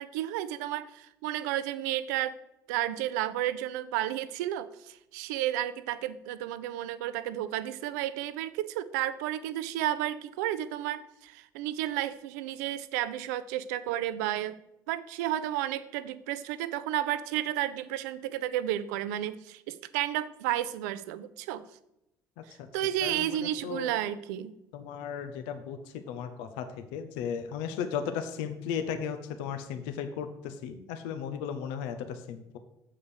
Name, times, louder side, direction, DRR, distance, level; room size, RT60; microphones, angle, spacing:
voice 1, 0.0-2.4 2.7-14.6 14.9-21.7 22.7-24.5, right 13 dB, 65° right, 15 dB, 0.5 m, -32 dB
voice 2, 22.4-22.7 23.0-23.9 24.7-32.6, left 7 dB, 65° left, 8 dB, 0.7 m, -36 dB
7.8 x 4.9 x 6.4 m, 0.83 s
figure-of-eight pair, 55°, 10 cm